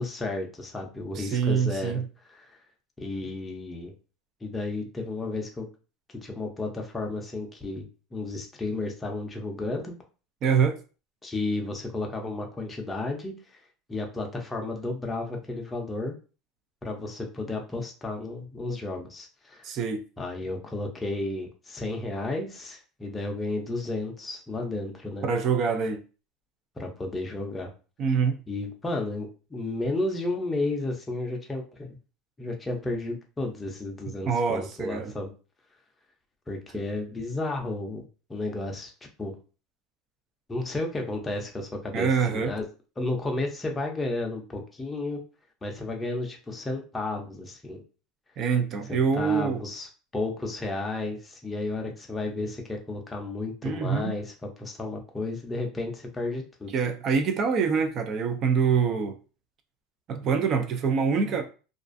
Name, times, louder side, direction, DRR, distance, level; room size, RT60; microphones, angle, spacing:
voice 1, 0.0-2.0 2.3-2.5 3.0-3.9 4.4-5.7 6.2-9.9 11.2-13.3 13.9-16.1 16.8-19.7 20.2-25.3 26.8-27.7 28.5-32.0 32.4-35.3 36.5-38.9 39.2-39.3 40.5-42.6 43.0-45.2 45.6-47.8 48.9-49.9 50.1-54.3 54.6-56.7, left 2 dB, 10° left, 0.5 m, -32 dB
voice 2, 1.2-2.0 10.4-10.8 19.6-20.0 25.2-26.0 28.0-28.4 34.3-35.1 41.9-42.5 48.4-49.6 53.6-54.2 56.7-59.2 60.1-61.4, right 6 dB, 40° right, 0.4 m, -25 dB
2.4 x 2.3 x 2.5 m
cardioid pair, 150°, 0 cm